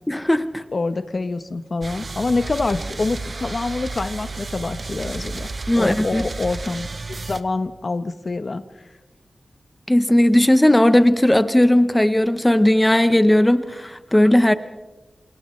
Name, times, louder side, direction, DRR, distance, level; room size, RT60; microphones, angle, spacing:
voice 1, 0.1-0.6 5.7-6.2 9.9-14.5, left 1 dB, 10° left, 11 dB, 0.8 m, -16 dB
voice 2, 0.7-5.5 5.7-6.9 7.2-8.6, left 3 dB, 50° left, 10 dB, 0.9 m, -26 dB
sound 1, 1.8-7.4, right 3 dB, 50° right, 1.1 m, -32 dB
29.5 x 27.5 x 3.2 m, 1.2 s
wide cardioid pair, 100°, 0 cm